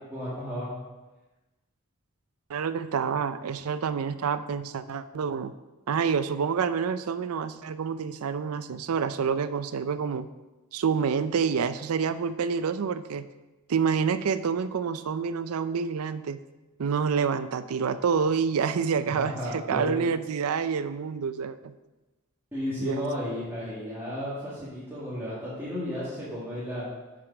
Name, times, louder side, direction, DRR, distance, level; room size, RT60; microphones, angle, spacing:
voice 1, 0.1-0.8 19.2-20.0 22.5-26.9, equal, 10° right, -11 dB, 2.0 m, -33 dB
voice 2, 2.5-5.5 5.9-10.3 10.7-13.2 13.7-16.4 16.8-21.7 22.8-23.1, right 6 dB, 75° right, 13 dB, 0.4 m, -28 dB
7.4 x 5.0 x 5.9 m, 1.1 s
head